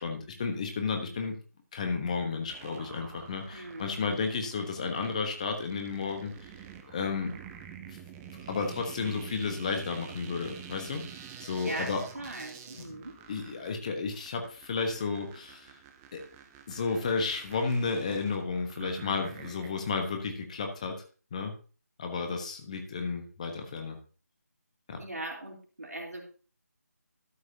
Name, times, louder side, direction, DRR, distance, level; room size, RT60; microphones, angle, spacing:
voice 1, 0.0-1.3 1.7-6.5 6.9-7.3 7.9-8.0 8.3-11.0 11.4-12.0 12.8-13.0 13.3-15.8 16.1-16.2 16.7-21.0 21.3-21.5 22.0-24.0 24.9-25.0, left 4 dB, 25° left, 4 dB, 1.2 m, -32 dB
sound 1, 2.5-20.0, right 8 dB, 10° right, 0.5 m, -48 dB
voice 2, 3.5-4.4 11.6-13.2 25.0-26.2, right 1 dB, 65° right, 1 dB, 3.3 m, -40 dB
12.5 x 8.0 x 2.8 m, 0.37 s
figure-of-eight pair, 155°, 9 cm